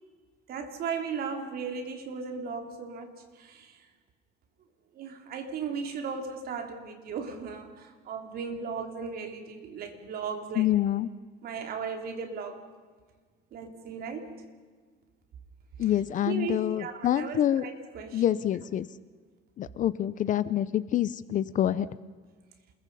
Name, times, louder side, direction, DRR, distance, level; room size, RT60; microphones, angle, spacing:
voice 1, 0.5-3.9 4.9-10.7 11.4-12.6 13.5-14.5 16.2-18.4, right 5 dB, 50° right, 4 dB, 3.3 m, -36 dB
voice 2, 10.6-11.1 15.8-17.6 18.1-18.9 19.6-21.9, left 11 dB, 40° left, 16 dB, 0.6 m, -26 dB
28.5 x 21.5 x 5.5 m, 1.5 s
cardioid pair, 155°, 20 cm